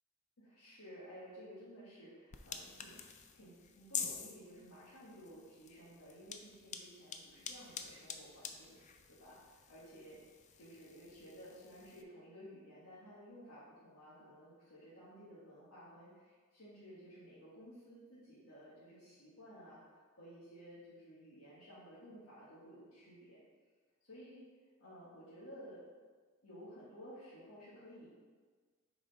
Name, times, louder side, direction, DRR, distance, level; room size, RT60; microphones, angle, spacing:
voice 1, 0.4-3.0 3.3-23.4 24.0-24.4 24.8-25.8 26.4-28.1, equal, 85° left, -9 dB, 1.7 m, -55 dB
sound 1, 2.3-12.0, left 7 dB, 35° left, 0.4 m, -48 dB
6.2 x 4.9 x 4.1 m, 1.5 s
head